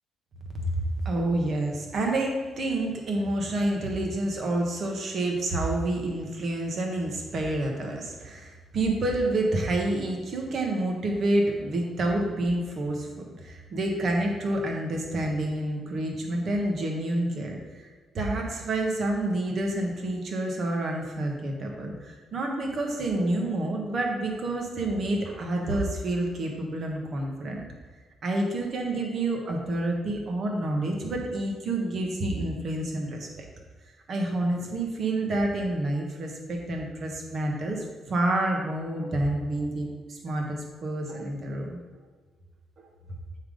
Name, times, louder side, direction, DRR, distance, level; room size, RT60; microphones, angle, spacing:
voice 1, 1.0-13.1 13.4-17.9 18.1-27.6 28.2-33.4 34.1-41.8 42.8-42.9, right 1 dB, 55° right, 1 dB, 1.5 m, -28 dB
7.2 x 3.8 x 5.1 m, 1.4 s
cardioid pair, 90°, 0 cm